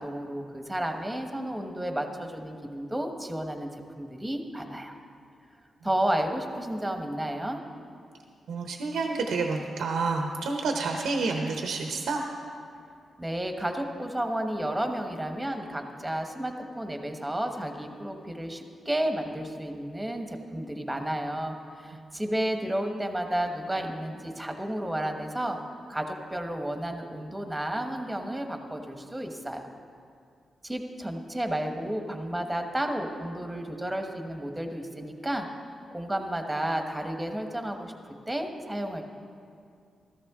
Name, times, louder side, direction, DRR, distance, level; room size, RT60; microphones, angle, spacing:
voice 1, 0.0-3.7 4.0-4.9 5.8-7.6 13.2-25.6 25.9-29.7 30.6-35.5 35.9-37.9 38.3-39.0, right 1 dB, 10° right, 4 dB, 1.2 m, -32 dB
voice 2, 8.5-12.2 21.9-22.0, right 4 dB, 85° right, 2 dB, 0.9 m, -29 dB
15.0 x 13.5 x 3.7 m, 2.4 s
cardioid pair, 95°, 0 cm